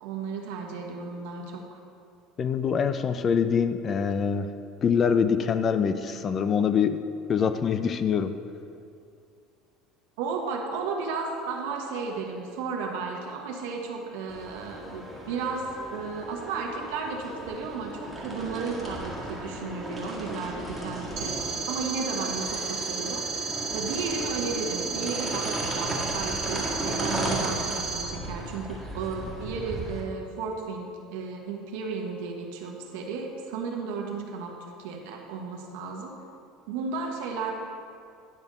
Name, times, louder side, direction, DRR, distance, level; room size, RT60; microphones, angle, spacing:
voice 1, 0.0-1.8 10.2-21.3 21.7-36.1 36.7-37.5, right 4 dB, 80° right, 0 dB, 1.2 m, -34 dB
voice 2, 2.4-4.5 4.8-7.0 7.3-8.3, left 7 dB, 35° left, 11 dB, 0.5 m, -24 dB
sound 1, 14.3-30.0, right 1 dB, ahead, 1.8 m, -36 dB
sound 2, 21.2-28.0, right 5 dB, 55° right, 1.3 m, -33 dB
10.5 x 3.5 x 6.6 m, 2.4 s
supercardioid pair, 115°, 0 cm